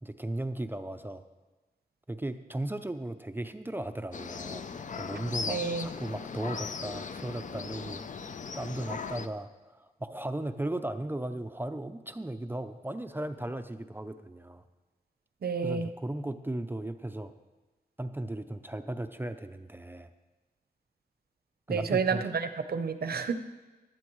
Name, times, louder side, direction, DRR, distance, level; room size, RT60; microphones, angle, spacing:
voice 1, 0.0-1.2 2.1-8.0 8.6-14.6 15.6-17.3 18.0-20.1 21.7-22.2, right 1 dB, 10° right, 8 dB, 0.5 m, -36 dB
sound 1, 4.1-9.3, left 5 dB, 50° left, 0.5 m, -38 dB
voice 2, 5.5-5.9 15.4-15.9 21.7-23.3, right 5 dB, 70° right, 9 dB, 0.7 m, -30 dB
16.5 x 12.0 x 3.1 m, 1.2 s
wide cardioid pair, 140°, 17 cm